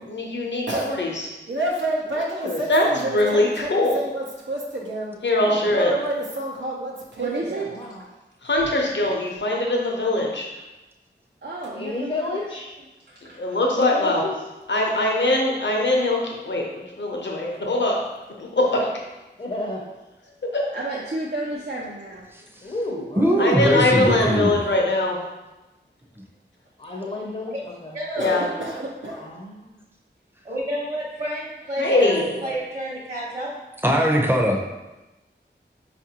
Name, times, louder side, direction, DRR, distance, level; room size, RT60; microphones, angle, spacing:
voice 1, 0.1-1.3 2.7-4.0 5.2-5.9 8.4-10.5 13.4-14.2 14.7-18.0 18.4-18.9 20.5-20.6 23.4-25.2 28.2-28.5 31.8-32.3, left 2 dB, 75° left, -1 dB, 0.7 m, -22 dB
voice 2, 1.5-5.2 5.6-7.6 28.2-29.3 32.0-32.6, right 1 dB, 90° right, -3 dB, 0.7 m, -29 dB
voice 3, 2.1-2.7 5.4-5.7 7.6-8.1 11.6-12.7 13.6-14.4 19.4-19.9 22.6-23.5 26.8-28.0 29.1-29.8 31.9-32.4, left 2 dB, 35° left, -2 dB, 0.6 m, -32 dB
voice 4, 7.2-7.7 11.4-12.5 13.1-13.6 20.7-22.3, right 2 dB, 60° right, -4 dB, 0.5 m, -31 dB
voice 5, 23.2-24.6 33.8-34.6, equal, 10° right, 1 dB, 0.6 m, -20 dB
voice 6, 27.9-28.5 30.5-33.5, equal, 40° right, -6 dB, 0.9 m, -30 dB
4.6 x 2.5 x 2.8 m, 1.0 s
wide cardioid pair, 45°, 19 cm